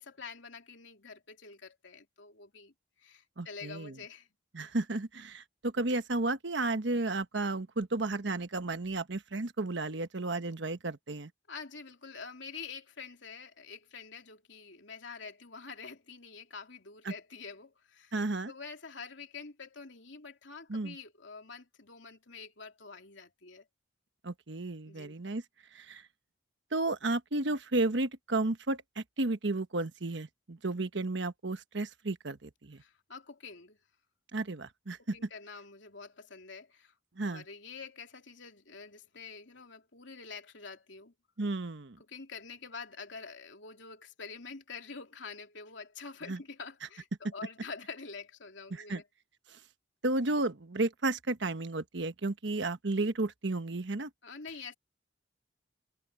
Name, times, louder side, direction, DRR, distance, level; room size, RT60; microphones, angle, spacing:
voice 1, 0.0-4.3 11.5-18.1 18.5-23.7 24.8-25.2 32.8-33.8 35.0-36.9 37.2-41.1 42.0-49.1 54.2-54.7, left 5 dB, 80° left, 2.9 m, -47 dB
voice 2, 3.4-3.9 4.5-11.3 18.1-18.5 20.7-20.9 24.2-25.4 25.7-26.0 26.7-32.8 34.3-35.2 37.2-37.4 41.4-42.0 46.3-46.4 48.7-49.0 50.0-54.1, right 2 dB, 70° right, 1.2 m, -33 dB
head